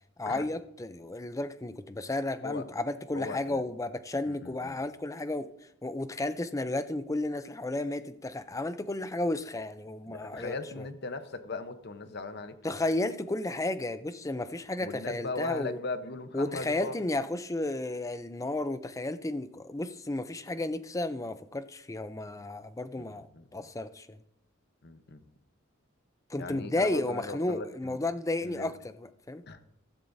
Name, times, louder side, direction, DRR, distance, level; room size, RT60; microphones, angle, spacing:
voice 1, 0.2-5.5 5.8-10.9 12.6-15.8 16.3-23.3 23.5-24.1 26.3-28.7 29.0-29.4, left 2 dB, 15° left, 11 dB, 0.5 m, -33 dB
voice 2, 3.1-3.6 4.3-4.8 10.1-12.6 14.8-17.0 23.0-23.7 24.8-25.2 26.4-28.0 28.4-28.7 29.5-29.6, left 3 dB, 55° left, 9 dB, 1.0 m, -38 dB
15.0 x 14.0 x 2.7 m, 0.78 s
head